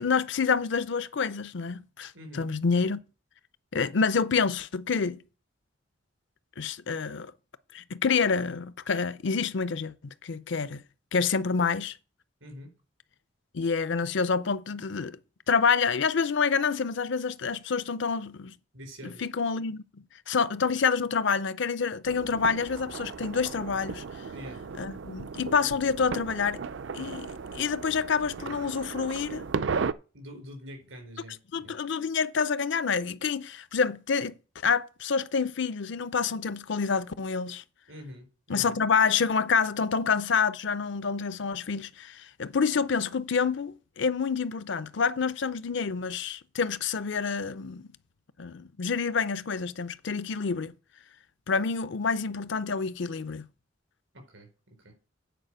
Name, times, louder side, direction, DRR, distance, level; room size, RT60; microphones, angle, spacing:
voice 1, 0.0-3.0 3.7-5.2 6.6-7.3 7.7-9.9 10.2-10.8 11.1-12.0 13.5-15.2 15.5-18.5 19.0-24.0 24.8-26.6 26.9-29.5 31.5-34.3 34.6-37.6 38.5-47.9 48.4-50.7 51.5-53.4, left 5 dB, 60° left, 0.5 m, -28 dB
voice 2, 2.1-2.5 12.4-12.7 18.7-19.3 24.3-24.6 30.1-31.7 37.9-38.8 54.1-54.5 54.8-54.9, equal, 85° right, 4.7 m, -45 dB
sound 1, 22.0-29.9, right 5 dB, 65° right, 0.4 m, -35 dB
9.1 x 4.8 x 7.6 m
head